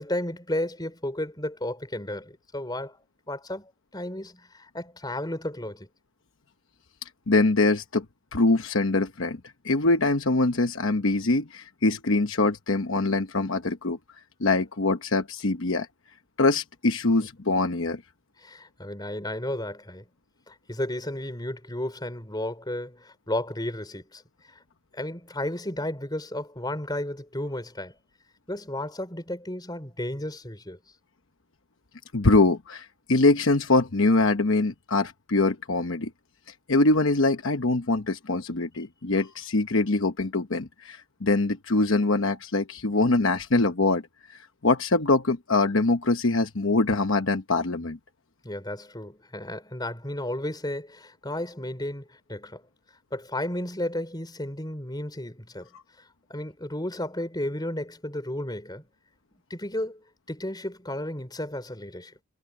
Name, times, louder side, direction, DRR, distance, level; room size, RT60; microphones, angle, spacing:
voice 1, 0.0-3.0 3.3-5.9 18.4-20.1 20.5-24.2 24.5-24.6 24.9-27.9 28.5-30.8 48.4-52.6 53.1-55.7 56.3-58.8 59.5-62.1, left 1 dB, 20° left, 4.7 m, -33 dB
voice 2, 7.3-8.0 8.3-9.4 9.6-14.0 14.4-15.9 16.4-18.0 32.1-36.1 36.7-44.0 44.3-48.0, left 2 dB, 60° left, 1.0 m, -23 dB
head